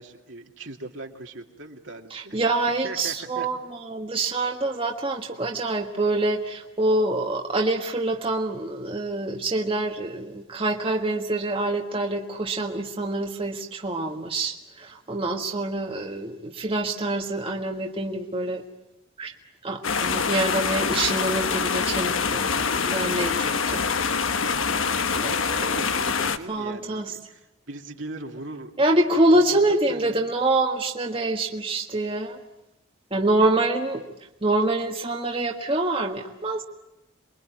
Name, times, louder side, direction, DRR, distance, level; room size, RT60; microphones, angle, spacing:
voice 1, 0.0-2.4 2.8-3.5 25.0-28.7 29.3-29.6 29.9-30.3 33.4-33.5, right 2 dB, 70° right, 2 dB, 2.7 m, -39 dB
voice 2, 2.1-18.6 19.2-19.3 19.6-23.8 25.2-25.7 26.5-27.2 28.8-32.4 33.1-34.0 34.4-36.6, right 2 dB, 25° right, 1 dB, 1.6 m, -26 dB
sound 1, 19.8-26.4, left 5 dB, 85° left, 1.2 m, -25 dB
28.0 x 22.5 x 9.2 m, 0.92 s
head